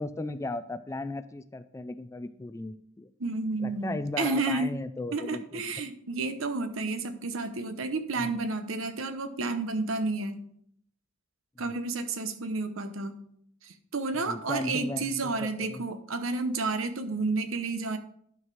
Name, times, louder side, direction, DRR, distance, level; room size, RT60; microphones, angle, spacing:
voice 1, 0.0-3.1 3.6-5.7 8.2-8.3 14.3-15.8, left 2 dB, 15° left, 13 dB, 0.3 m, -36 dB
voice 2, 3.2-4.8 5.1-10.4 11.6-13.1 13.6-18.0, right 3 dB, 80° right, 9 dB, 0.9 m, -31 dB
11.0 x 4.8 x 4.8 m, 0.68 s
head